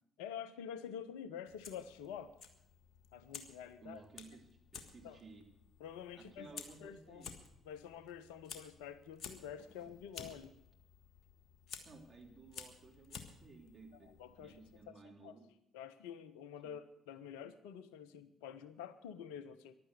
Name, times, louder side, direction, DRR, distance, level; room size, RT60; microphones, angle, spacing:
voice 1, 0.2-2.3 3.1-4.0 5.0-5.2 5.8-6.5 6.8-7.2 7.7-10.5 14.0-14.6 14.9-15.4 15.7-19.8, left 8 dB, 70° left, 14 dB, 0.7 m, -48 dB
Fire, 1.4-14.8, left 6 dB, 55° left, 1.5 m, -54 dB
voice 2, 3.8-5.5 6.2-7.3 11.8-14.1 14.4-15.4 16.6-16.7, right 4 dB, 40° right, 0 dB, 3.3 m, -56 dB
15.5 x 11.5 x 6.7 m, 0.80 s
figure-of-eight pair, 45°, 0 cm